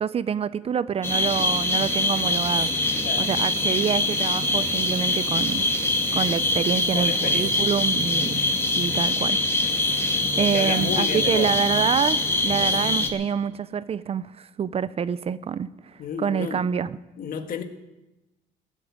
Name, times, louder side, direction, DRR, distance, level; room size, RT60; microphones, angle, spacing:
voice 1, 0.0-5.6 6.1-8.4 8.8-9.4 9.7-9.8 10.4-15.7 16.2-17.0, right 7 dB, 35° right, 16 dB, 0.5 m, -26 dB
sound 1, 1.0-13.1, left 2 dB, 15° left, 2.0 m, -24 dB
voice 2, 6.9-7.7 10.3-11.6 12.5-12.8 16.0-16.7 17.2-17.6, left 7 dB, 55° left, 8 dB, 1.6 m, -32 dB
15.5 x 8.5 x 9.4 m, 1.0 s
cardioid pair, 110°, 17 cm